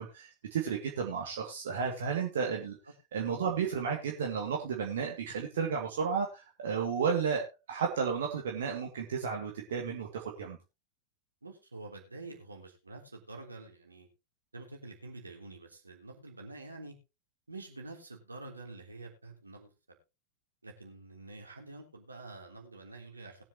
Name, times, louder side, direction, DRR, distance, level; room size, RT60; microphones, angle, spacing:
voice 1, 0.0-2.8 3.1-10.6, right 6 dB, 60° right, 0 dB, 2.2 m, -33 dB
voice 2, 11.4-14.1 14.5-16.9 17.5-20.0 20.6-23.4, right 2 dB, 80° right, 1 dB, 3.1 m, -47 dB
21.0 x 7.5 x 2.9 m, 0.26 s
figure-of-eight pair, 90°, 0 cm